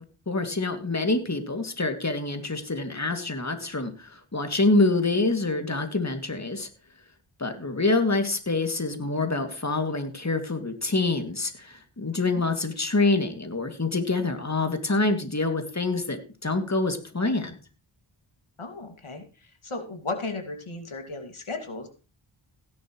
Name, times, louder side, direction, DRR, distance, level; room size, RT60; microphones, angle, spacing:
voice 1, 0.3-6.7 7.4-17.6, left 3 dB, 35° left, 6 dB, 2.5 m, -26 dB
voice 2, 18.6-21.9, left 3 dB, 75° left, 5 dB, 2.4 m, -35 dB
16.0 x 11.0 x 3.1 m, 0.34 s
cardioid pair, 45°, 50 cm